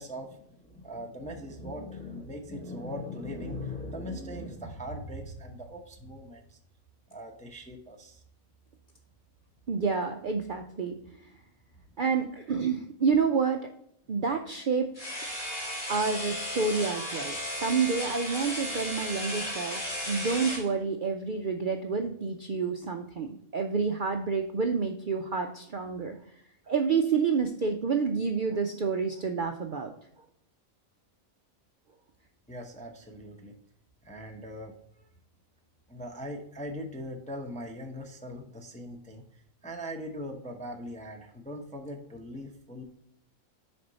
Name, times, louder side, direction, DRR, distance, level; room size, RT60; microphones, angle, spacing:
voice 1, 0.0-6.6 7.1-8.2 32.5-33.6 34.0-35.1 35.9-42.8, equal, 10° left, 3 dB, 0.5 m, -40 dB
voice 2, 9.7-11.0 12.0-13.7 14.1-14.9 15.9-19.8 20.1-26.2 26.7-29.9, right 5 dB, 60° right, 5 dB, 0.5 m, -29 dB
sound 1, 15.0-20.7, equal, 45° left, 2.3 m, -35 dB
6.6 x 4.4 x 4.0 m, 0.73 s
omnidirectional pair, 1.4 m